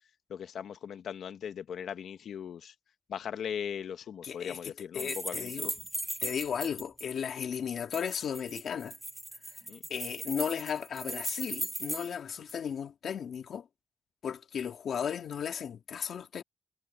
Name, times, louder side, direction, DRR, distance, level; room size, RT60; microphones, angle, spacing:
voice 1, 0.3-2.7 3.1-5.7 9.7-9.8, left 8 dB, 85° left, 1.1 m, -39 dB
voice 2, 4.2-5.7 6.2-9.0 9.9-13.7 14.2-16.4, left 7 dB, 65° left, 2.2 m, -35 dB
sound 1, 5.0-7.0 7.9-12.1 12.5-12.6, right 1 dB, 10° right, 1.1 m, -38 dB
wide cardioid pair, 180°, 0 cm